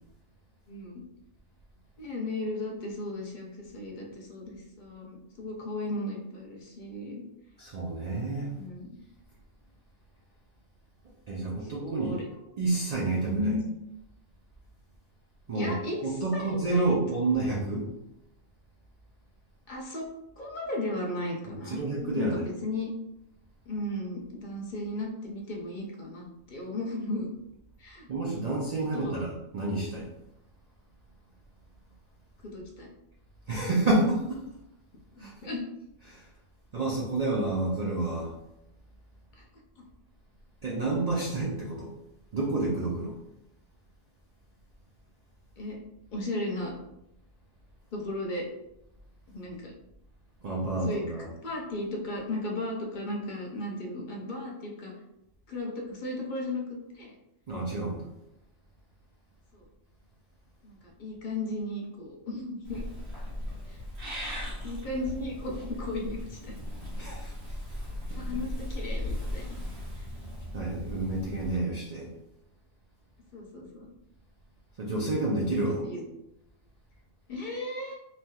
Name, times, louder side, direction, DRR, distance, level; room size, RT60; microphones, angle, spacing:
voice 1, 0.7-1.0 2.0-7.2 8.5-9.0 11.5-12.2 13.2-13.7 15.5-17.0 19.7-20.0 20.4-22.9 23.7-27.3 27.8-28.1 28.9-29.2 32.4-32.9 35.1-35.6 39.4-39.5 45.6-45.8 46.1-46.7 47.9-48.5 49.3-49.7 50.8-51.0 51.4-54.9 55.5-57.1 59.5-59.7 60.6-62.8 63.7-63.8 64.6-66.6 68.1-69.5 69.9-70.1 73.3-73.9 75.8-76.0 77.3-78.0, left 1 dB, 55° left, -1 dB, 0.6 m, -35 dB
voice 2, 7.6-8.5 11.3-12.1 12.6-13.5 15.5-15.7 16.0-17.9 21.5-22.4 28.1-30.1 33.5-34.4 35.2-35.3 36.1-36.3 36.7-38.3 40.6-41.9 42.3-43.1 50.4-51.3 57.5-58.1 67.0-67.5 70.5-72.1 74.8-75.8, right 2 dB, 80° right, -3 dB, 0.3 m, -29 dB
Purr / Meow, 62.6-71.6, left 1 dB, 60° right, 1.2 m, -37 dB
3.2 x 2.7 x 2.3 m, 0.86 s
omnidirectional pair, 1.3 m